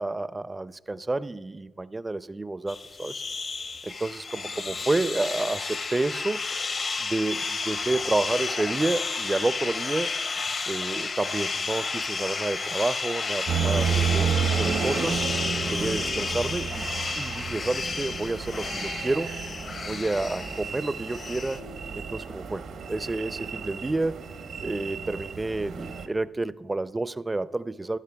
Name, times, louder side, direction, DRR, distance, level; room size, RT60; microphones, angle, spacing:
voice 1, 0.0-3.2 3.8-6.4 7.0-10.2 10.7-15.2 15.7-16.9 17.2-19.3 19.8-21.6 21.9-24.2 24.6-28.0, right 2 dB, 25° right, 0.4 m, -30 dB
sound 1, 2.7-21.6, left 4 dB, 55° left, 0.8 m, -32 dB
sound 2, 13.5-26.1, right 6 dB, 80° right, 0.9 m, -31 dB
14.5 x 12.0 x 2.3 m
supercardioid pair, 50°, 0 cm